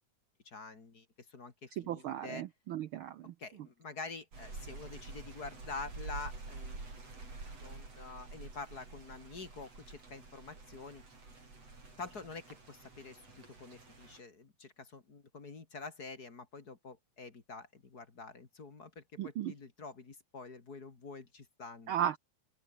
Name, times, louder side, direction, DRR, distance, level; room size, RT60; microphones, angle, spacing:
voice 1, 0.4-2.4 3.4-6.8 7.6-11.0 12.0-21.9, left 4 dB, 35° left, 2.8 m, -47 dB
voice 2, 1.8-3.3 19.2-19.5 21.9-22.2, right 10 dB, 85° right, 1.1 m, -35 dB
sound 1, 4.3-14.2, right 3 dB, 55° right, 7.9 m, -48 dB
open air
omnidirectional pair, 3.4 m